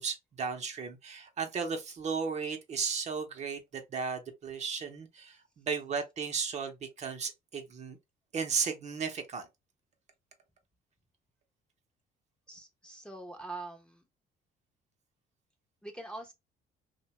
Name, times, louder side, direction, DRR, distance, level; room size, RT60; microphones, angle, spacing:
voice 1, 0.0-8.0 8.3-9.4, right 5 dB, 40° right, 0.6 m, -35 dB
voice 2, 12.5-14.1 15.8-16.3, right 2 dB, 5° left, 0.6 m, -43 dB
2.8 x 2.2 x 2.8 m
cardioid pair, 110°, 17 cm